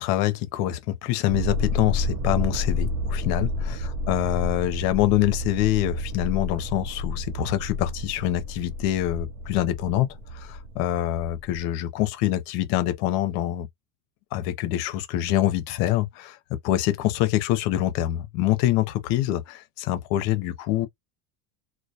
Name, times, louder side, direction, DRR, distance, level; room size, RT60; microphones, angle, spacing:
voice 1, 0.0-10.1 10.3-13.7 14.3-16.4 16.6-20.9, left 13 dB, 60° left, 0.6 m, -25 dB
sound 1, 1.3-11.6, left 2 dB, 70° right, 0.6 m, -30 dB
2.2 x 2.1 x 2.6 m
cardioid pair, 160°, 36 cm